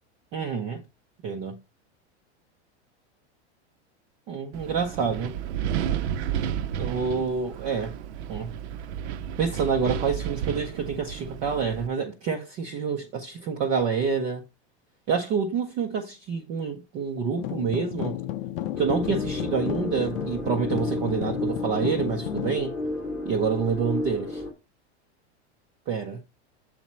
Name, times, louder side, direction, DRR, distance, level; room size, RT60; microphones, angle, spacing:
voice 1, 0.3-0.8 1.2-1.6 4.3-5.4 6.8-8.0 8.3-8.6 9.4-14.4 15.1-18.2 18.8-22.7 23.2-24.4 25.9-26.2, right 6 dB, 20° right, 0.3 m, -27 dB
Wind, 4.5-11.9, right 9 dB, 70° right, 0.6 m, -32 dB
sound 1, 17.4-22.6, left 13 dB, 55° left, 0.6 m, -33 dB
sound 2, 18.7-24.5, left 2 dB, ahead, 0.9 m, -32 dB
7.3 x 4.0 x 4.2 m
supercardioid pair, 170°, 34 cm